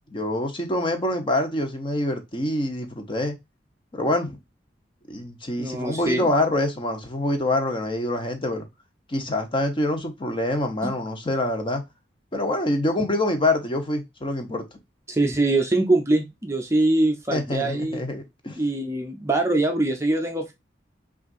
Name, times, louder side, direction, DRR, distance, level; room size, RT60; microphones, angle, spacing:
voice 1, 0.1-3.4 3.9-4.4 5.1-8.7 9.1-11.8 12.3-14.6 17.3-18.6, left 1 dB, 30° left, 0.8 m, -25 dB
voice 2, 5.6-6.3 10.8-10.9 15.1-18.0 18.6-20.5, right 2 dB, 15° right, 0.5 m, -23 dB
5.7 x 2.5 x 2.5 m
head